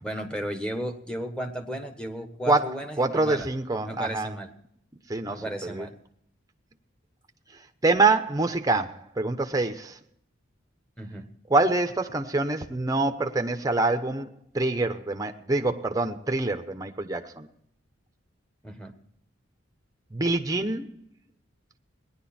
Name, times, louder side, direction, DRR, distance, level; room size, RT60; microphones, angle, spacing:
voice 1, 0.0-3.5 3.8-4.5 5.2-5.9 11.0-11.2 18.6-18.9, right 1 dB, 5° left, 1.3 m, -34 dB
voice 2, 3.0-4.3 5.1-5.9 7.8-10.0 11.5-14.3 14.5-17.5 20.1-20.9, right 3 dB, 20° right, 0.9 m, -25 dB
18.0 x 11.0 x 4.3 m
head